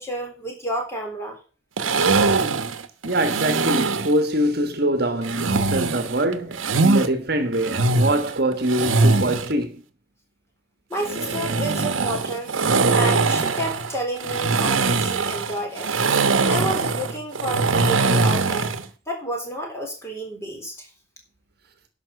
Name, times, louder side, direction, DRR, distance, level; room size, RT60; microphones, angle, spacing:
voice 1, 0.0-1.4 10.9-12.5 12.9-15.9 16.5-18.7 19.1-20.9, right 1 dB, 15° left, 3.7 m, -30 dB
sound 1, 1.8-4.2 5.2-7.1 7.5-9.5 10.9-18.9, right 3 dB, 85° right, 1.2 m, -22 dB
voice 2, 3.0-9.8, right 1 dB, 50° right, 1.5 m, -23 dB
11.0 x 5.9 x 7.8 m
head